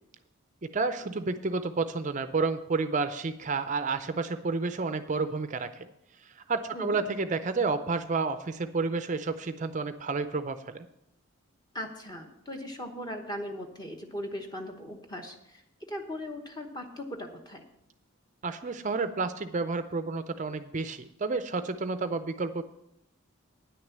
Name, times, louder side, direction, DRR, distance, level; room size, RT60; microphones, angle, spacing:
voice 1, 0.6-5.9 6.3-10.8 18.4-22.6, right 4 dB, 35° right, 10 dB, 0.4 m, -30 dB
voice 2, 11.7-15.6 15.9-17.6, left 1 dB, 20° left, 3 dB, 1.1 m, -38 dB
9.7 x 6.4 x 7.3 m, 0.82 s
head